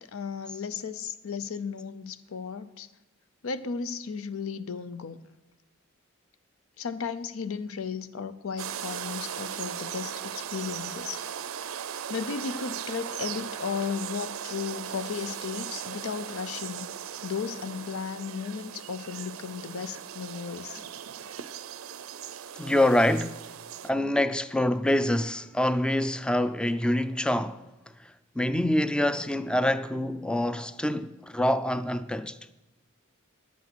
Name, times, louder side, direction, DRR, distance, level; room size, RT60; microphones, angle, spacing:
voice 1, 0.1-2.9 3.4-5.2 6.8-11.2 12.1-16.9 17.2-20.8, left 6 dB, 90° left, 0.6 m, -35 dB
sound 1, 8.6-23.9, right 9 dB, 90° right, 0.5 m, -38 dB
voice 2, 22.6-23.4 23.8-27.7 28.0-32.4, left 1 dB, 5° left, 0.3 m, -26 dB
10.5 x 8.2 x 6.1 m
head